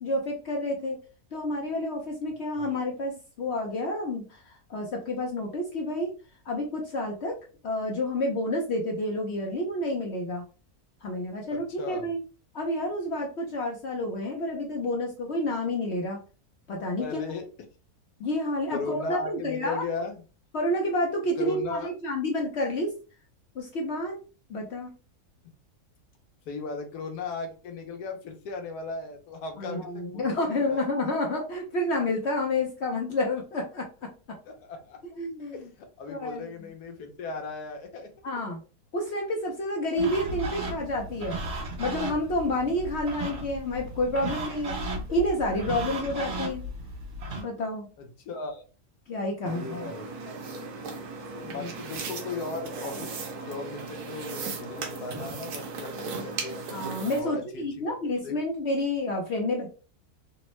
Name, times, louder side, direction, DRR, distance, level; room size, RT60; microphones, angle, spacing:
voice 1, 0.0-1.0 1.3-6.1 6.5-10.4 11.0-12.2 12.5-16.2 16.7-17.1 18.2-19.8 20.5-22.9 23.5-24.2 24.5-24.9 29.6-34.1 35.2-35.7 36.1-36.5 38.2-38.6 38.9-41.4 41.8-44.8 45.1-46.6 47.4-47.9 49.1-49.9 51.3-51.7 56.7-59.7, left 1 dB, 60° left, 0 dB, 0.7 m, -29 dB
voice 2, 11.5-12.1 17.0-17.5 18.7-20.2 21.4-21.9 26.5-30.9 34.4-35.0 35.5-38.1 48.0-48.6 49.5-50.4 51.4-53.1 53.4-56.6 57.2-58.0 58.2-58.4, left 3 dB, 80° left, 5 dB, 1.2 m, -37 dB
sound 1, 40.0-47.4, right 2 dB, 50° right, 1.6 m, -35 dB
sound 2, 49.5-57.2, right 4 dB, 80° right, 1.2 m, -37 dB
3.5 x 2.1 x 3.0 m, 0.35 s
omnidirectional pair, 1.7 m